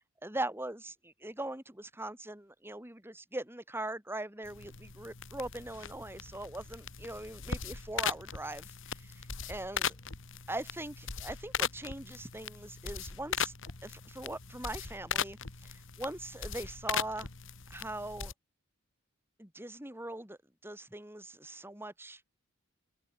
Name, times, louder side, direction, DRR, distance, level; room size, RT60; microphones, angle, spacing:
voice 1, 0.2-9.9 10.5-13.5 13.8-17.3 17.7-18.3 19.4-20.4 20.6-22.2, right 1 dB, 10° right, 3.0 m, -41 dB
sound 1, 4.4-18.3, left 7 dB, 60° left, 2.0 m, -39 dB
open air
head